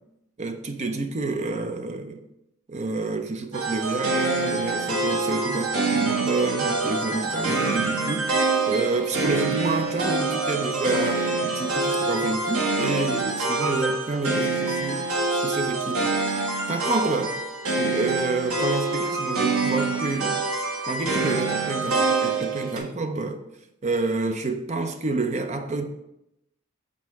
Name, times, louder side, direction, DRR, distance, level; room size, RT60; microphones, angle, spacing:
voice 1, 0.4-2.2 2.7-16.1 16.7-17.4 17.8-20.4 20.9-23.4 23.8-25.8, right 3 dB, 30° right, 0.5 m, -28 dB
sound 1, 3.5-22.8, right 3 dB, 75° right, 1.3 m, -25 dB
6.2 x 4.2 x 4.7 m
head